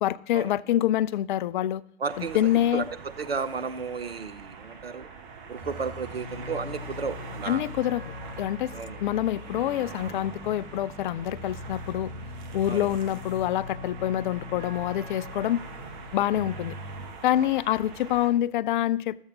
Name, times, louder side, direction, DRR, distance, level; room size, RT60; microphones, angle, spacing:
voice 1, 0.0-1.8 2.2-2.9 7.5-8.7 9.0-12.1 12.5-15.6 16.1-16.8 17.2-19.2, left 12 dB, 55° left, 0.4 m, -26 dB
voice 2, 2.0-2.4 2.7-2.9 3.2-5.1 5.5-7.7 8.7-9.0 12.7-12.9, right 5 dB, 90° right, 0.7 m, -33 dB
sound 1, 2.1-18.3, right 5 dB, 50° right, 1.4 m, -44 dB
sound 2, 5.5-17.1, left 2 dB, 70° right, 4.8 m, -41 dB
13.0 x 7.1 x 4.0 m
figure-of-eight pair, 100°, 29 cm